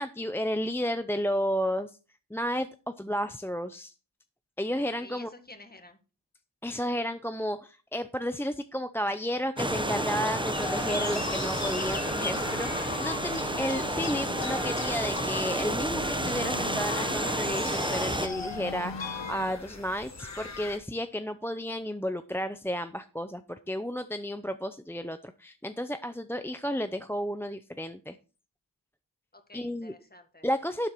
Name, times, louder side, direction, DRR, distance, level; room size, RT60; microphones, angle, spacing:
voice 1, 0.0-1.9 2.3-2.7 3.0-3.9 4.6-5.3 6.6-28.2 29.5-29.9 30.4-30.9, equal, 5° left, 10 dB, 0.5 m, -32 dB
voice 2, 5.0-6.0 29.3-30.4, left 2 dB, 20° left, 7 dB, 1.7 m, -50 dB
sound 1, 9.6-19.5, left 5 dB, 80° left, 1.0 m, -39 dB
sound 2, 9.6-18.3, right 1 dB, 10° right, 1.0 m, -31 dB
sound 3, 10.5-20.8, left 3 dB, 35° left, 1.7 m, -41 dB
12.0 x 7.1 x 4.5 m, 0.34 s
wide cardioid pair, 75°, 44 cm